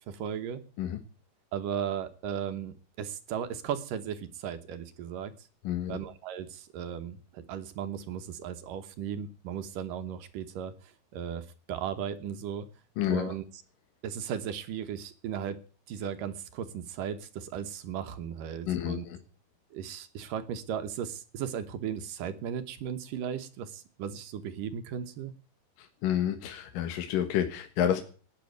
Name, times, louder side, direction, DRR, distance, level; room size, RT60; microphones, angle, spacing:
voice 1, 0.1-0.6 1.5-5.3 5.9-12.7 13.1-13.4 14.0-15.6 15.9-19.1 19.7-25.3, right 8 dB, 70° right, 9 dB, 2.4 m, -36 dB
voice 2, 5.6-6.0 13.0-13.3 18.7-19.2 25.8-28.0, left 10 dB, 65° left, 6 dB, 2.8 m, -29 dB
14.0 x 9.7 x 9.3 m, 0.40 s
omnidirectional pair, 4.6 m